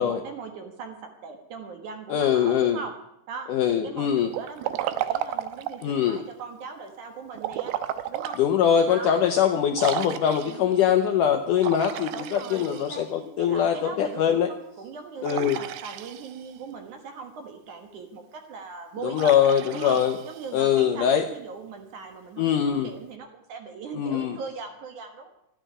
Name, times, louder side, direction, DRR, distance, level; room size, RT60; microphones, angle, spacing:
voice 1, 0.0-2.9 3.3-7.7 8.1-8.4 8.8-9.2 10.4-10.9 12.1-13.1 13.4-19.3 19.7-25.3, right 5 dB, 60° right, 5 dB, 2.6 m, -40 dB
voice 2, 2.1-2.8 3.5-4.3 5.8-6.2 8.4-14.5 15.2-15.6 19.0-20.2 20.5-21.3 22.4-22.9 23.9-24.4, left 9 dB, 75° left, 5 dB, 1.9 m, -22 dB
Liquid, 4.3-5.9 7.4-8.4 8.9-9.0 9.8-10.7 11.6-13.2 15.2-16.6 19.1-20.8, right 12 dB, 75° right, 2.5 m, -33 dB
13.5 x 9.6 x 10.0 m, 0.80 s
omnidirectional pair, 4.7 m